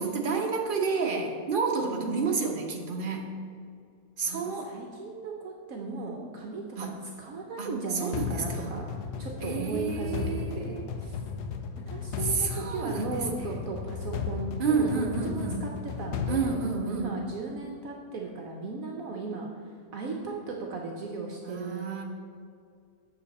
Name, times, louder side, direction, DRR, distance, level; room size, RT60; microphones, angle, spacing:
voice 1, 0.0-3.4 4.2-4.7 6.8-6.9 7.6-8.7 9.4-10.9 12.2-13.1 14.6-15.7 16.3-17.2 21.4-22.0, right 4 dB, 40° right, 1 dB, 1.0 m, -30 dB
voice 2, 1.7-2.3 4.2-11.2 11.9-19.5 19.9-22.0, right 4 dB, 65° right, 0 dB, 1.1 m, -37 dB
sound 1, 8.1-17.3, left 5 dB, 90° left, 1.3 m, -35 dB
8.5 x 6.9 x 4.2 m, 2.3 s
omnidirectional pair, 1.7 m